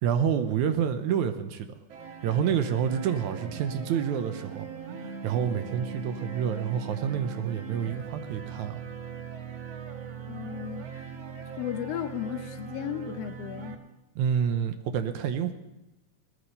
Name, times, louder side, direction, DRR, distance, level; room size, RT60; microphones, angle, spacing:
voice 1, 0.0-1.7 2.2-4.7 5.0-8.8 14.2-15.5, right 8 dB, 80° right, 8 dB, 2.3 m, -28 dB
sound 1, 1.9-13.7, right 6 dB, 60° right, 2.3 m, -40 dB
voice 2, 10.3-11.1 11.6-13.8, left 10 dB, 70° left, 9 dB, 1.6 m, -35 dB
18.5 x 13.0 x 5.5 m, 1.0 s
omnidirectional pair, 3.4 m